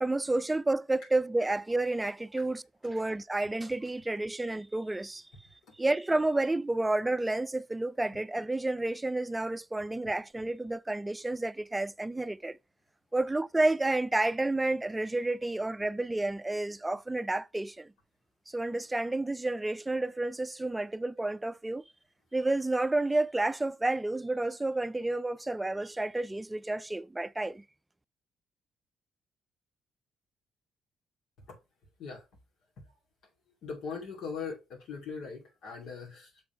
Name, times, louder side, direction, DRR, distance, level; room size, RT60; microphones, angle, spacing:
voice 1, 0.0-5.2 5.8-12.6 13.1-17.9 18.5-21.8 22.3-27.6, right 2 dB, 15° right, 0.4 m, -30 dB
voice 2, 33.6-36.4, left 5 dB, 80° left, 2.5 m, -40 dB
7.0 x 3.7 x 4.5 m
cardioid pair, 90°, 0 cm